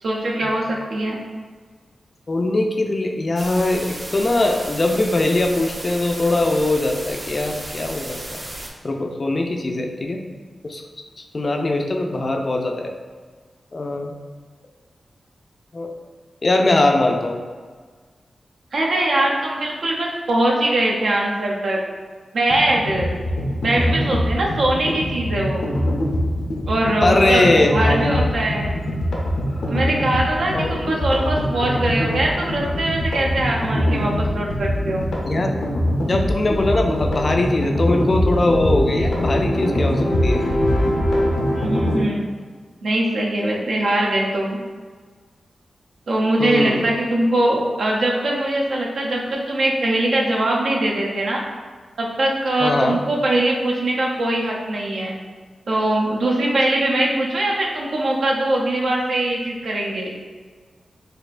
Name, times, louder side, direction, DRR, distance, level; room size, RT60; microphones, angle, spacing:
voice 1, 0.0-1.2 18.7-21.8 22.3-23.2 23.6-25.7 26.7-28.7 29.7-35.1 41.6-42.3 42.8-44.6 46.1-51.4 52.0-55.1 55.7-60.1, right 1 dB, 75° right, -2 dB, 0.6 m, -21 dB
voice 2, 2.3-8.4 8.8-10.2 10.6-10.8 11.3-12.9 13.7-14.1 15.7-15.9 16.4-17.4 27.0-28.5 30.5-30.7 31.3-31.4 35.3-35.6 36.1-40.4 46.4-46.9 52.6-53.0, left 2 dB, 40° left, 3 dB, 0.3 m, -21 dB
sound 1, 3.4-8.7, right 1 dB, 30° right, 0.5 m, -34 dB
sound 2, 22.5-42.0, equal, 90° left, 0.7 m, -22 dB
4.1 x 2.6 x 2.5 m, 1.5 s
wide cardioid pair, 120°, 0 cm